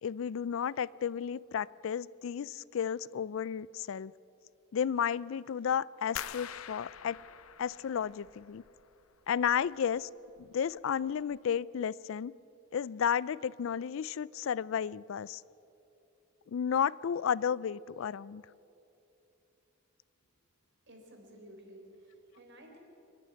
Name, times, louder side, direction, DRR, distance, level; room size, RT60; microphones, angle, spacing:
voice 1, 0.0-4.1 4.7-7.2 7.6-8.6 9.3-10.1 10.4-12.3 12.7-15.4 16.5-18.4, left 8 dB, 65° left, 22 dB, 0.3 m, -32 dB
sound 1, 6.2-9.0 9.3-10.0 10.4-10.8 11.2-11.4, left 9 dB, 80° left, 0.8 m, -45 dB
voice 2, 20.9-22.8, right 1 dB, 55° right, 2 dB, 3.9 m, -53 dB
25.0 x 11.5 x 9.6 m, 2.9 s
head